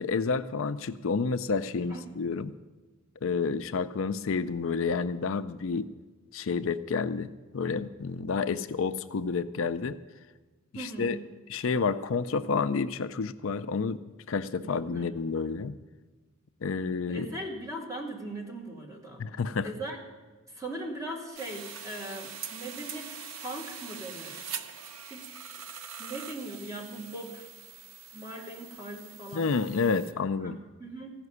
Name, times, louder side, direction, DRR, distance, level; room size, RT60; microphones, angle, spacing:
voice 1, 0.0-2.5 3.2-5.9 6.3-10.0 10.7-11.2 11.5-15.8 16.6-17.3 19.2-19.7 29.3-30.6, left 5 dB, 65° left, 11 dB, 0.5 m, -30 dB
voice 2, 10.7-11.2 14.6-15.1 17.1-19.2 19.6-20.0 20.5-24.4 25.1-25.3 26.0-27.5 28.1-29.5 30.4-31.1, right 1 dB, 15° right, -1 dB, 2.0 m, -39 dB
sound 1, 21.4-30.1, right 6 dB, 80° right, 0.8 m, -43 dB
15.0 x 5.9 x 9.5 m, 1.3 s
head